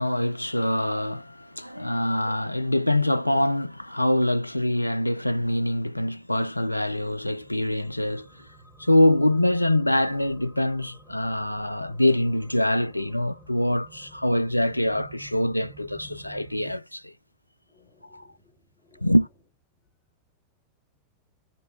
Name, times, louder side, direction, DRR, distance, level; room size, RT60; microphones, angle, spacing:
voice 1, 0.0-8.4 8.8-17.1 18.1-18.3 19.0-19.3, left 1 dB, 90° left, 0.3 m, -24 dB
sound 1, 6.8-16.8, right 1 dB, 10° right, 2.0 m, -50 dB
voice 2, 17.7-19.2, left 3 dB, 45° left, 2.3 m, -61 dB
6.6 x 3.1 x 4.7 m
figure-of-eight pair, 90°, 0 cm